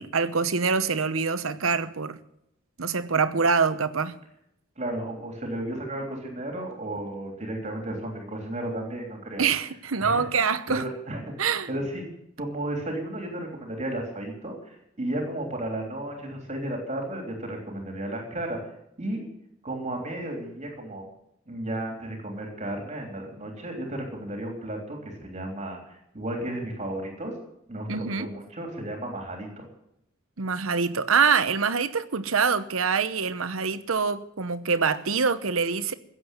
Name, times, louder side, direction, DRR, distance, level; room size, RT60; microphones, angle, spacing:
voice 1, 0.0-2.2 2.8-4.1 9.4-10.8 11.4-11.8 27.9-28.3 30.4-35.9, right 5 dB, 80° right, 0.9 m, -25 dB
voice 2, 4.8-9.4 10.0-10.2 10.7-12.1 12.4-18.6 19.0-19.3 19.6-21.0 21.5-27.3 27.7-29.6, right 1 dB, 35° right, 3.4 m, -33 dB
16.5 x 7.7 x 9.1 m
head